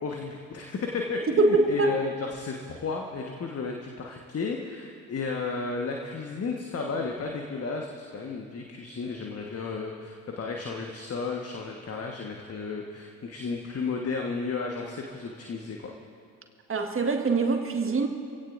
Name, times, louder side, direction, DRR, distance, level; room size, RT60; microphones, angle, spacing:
voice 1, 0.0-15.9, left 4 dB, 35° left, 1 dB, 1.4 m, -33 dB
voice 2, 1.3-2.0 16.7-18.1, right 3 dB, 30° right, 4 dB, 1.7 m, -23 dB
25.5 x 17.0 x 2.6 m, 2.3 s
figure-of-eight pair, 45°, 44 cm